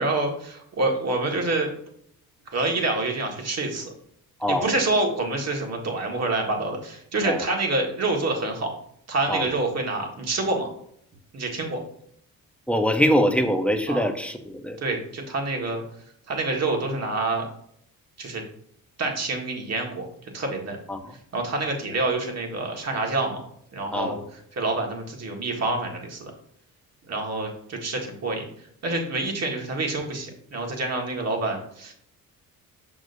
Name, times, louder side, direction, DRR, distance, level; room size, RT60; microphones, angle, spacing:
voice 1, 0.0-1.7 2.5-3.9 4.5-8.7 9.1-10.7 11.3-11.8 13.9-14.1 14.8-15.8 16.3-17.5 18.2-18.4 19.0-20.8 21.3-23.4 23.7-26.3 27.1-31.9, right 2 dB, 50° right, 1 dB, 1.7 m, -27 dB
voice 2, 12.7-14.8 20.9-21.1 23.9-24.2, equal, 5° left, 5 dB, 0.7 m, -23 dB
6.2 x 6.2 x 2.6 m, 0.69 s
cardioid pair, 90°, 34 cm